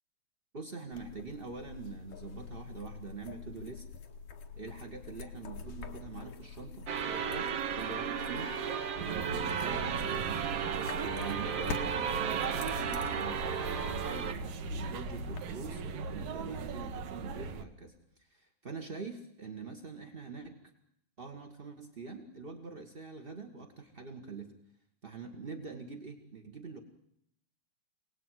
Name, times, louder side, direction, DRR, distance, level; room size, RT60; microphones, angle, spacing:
voice 1, 0.5-3.9 4.5-8.5 9.0-10.4 11.0-20.6 21.2-24.5 25.0-26.8, right 4 dB, 35° right, 3 dB, 0.9 m, -44 dB
sound 1, 0.9-15.4, left 5 dB, 65° left, 3.0 m, -46 dB
sound 2, 6.9-14.3, right 7 dB, 55° right, 2.1 m, -34 dB
sound 3, 9.0-17.6, right 4 dB, 90° right, 3.2 m, -39 dB
27.0 x 19.0 x 9.2 m, 0.76 s
omnidirectional pair, 3.9 m